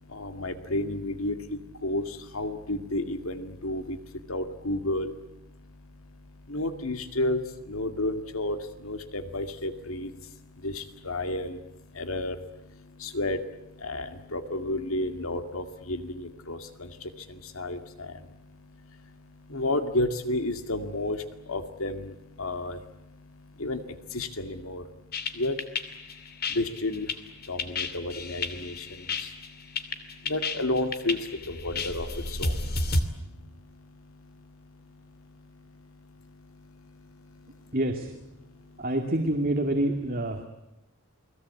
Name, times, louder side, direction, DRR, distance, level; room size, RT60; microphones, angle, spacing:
voice 1, 0.0-37.8 38.3-38.9 40.1-40.5, left 1 dB, 75° left, 8 dB, 2.2 m, -33 dB
sound 1, 25.1-33.0, left 3 dB, 45° left, 2.6 m, -31 dB
voice 2, 37.7-38.1 38.8-40.5, right 1 dB, 40° right, 4 dB, 2.4 m, -27 dB
29.5 x 21.0 x 8.4 m, 0.93 s
head